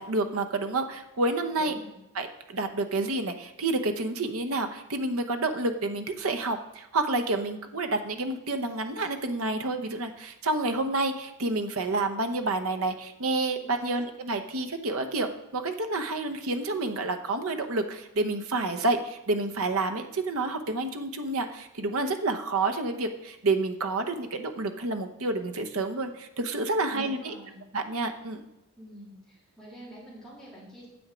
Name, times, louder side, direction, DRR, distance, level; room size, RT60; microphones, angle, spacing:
voice 1, 0.0-1.7 2.1-27.3 27.7-28.4, right 2 dB, 70° right, 6 dB, 0.9 m, -29 dB
voice 2, 1.5-1.9 13.6-14.1 26.9-27.6 28.8-30.9, equal, ahead, -8 dB, 3.2 m, -47 dB
8.6 x 7.2 x 5.0 m, 0.89 s
head